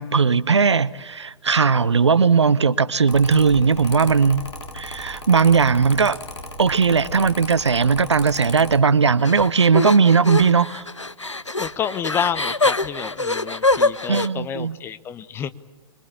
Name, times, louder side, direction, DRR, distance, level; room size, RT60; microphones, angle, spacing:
voice 1, 0.0-4.5 4.7-6.2 6.6-10.8 14.1-14.7, right 5 dB, 70° right, 0.9 m, -18 dB
Mechanical fan, 3.1-8.8, left 1 dB, 70° left, 3.8 m, -36 dB
sound 1, 9.2-14.3, left 2 dB, 85° left, 0.8 m, -24 dB
voice 2, 11.6-15.5, left 8 dB, 15° left, 0.8 m, -29 dB
25.5 x 22.0 x 8.5 m
figure-of-eight pair, 115°, 15 cm